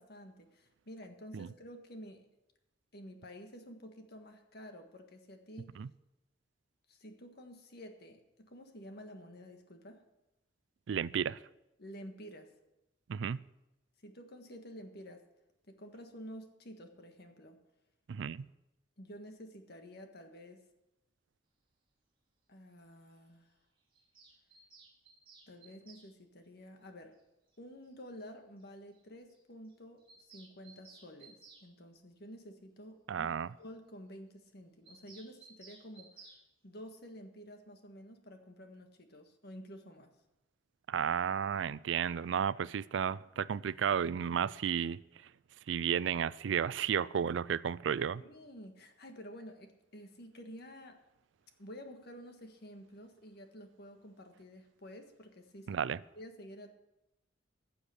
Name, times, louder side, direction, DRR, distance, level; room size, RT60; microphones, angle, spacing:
voice 1, 0.0-2.3 2.9-5.8 6.9-10.0 11.8-12.5 14.0-15.2 15.7-17.6 19.0-20.6 22.5-23.5 25.5-27.1 27.6-36.3 36.6-40.1 48.2-51.0 51.6-56.7, equal, 60° left, 1.6 m, -51 dB
voice 2, 10.9-11.4 13.1-13.4 18.1-18.5 33.1-33.5 40.9-45.0 45.7-48.2 55.7-56.0, right 7 dB, 75° right, 0.4 m, -33 dB
Bird vocalization bird call bird song, 23.9-26.1 27.5-27.6 27.9-28.0 28.2-28.3 28.6-28.7 28.9-29.0 29.3-29.4 29.7-31.7 34.8-36.4, right 4 dB, 30° right, 2.5 m, -58 dB
15.5 x 7.0 x 6.5 m
head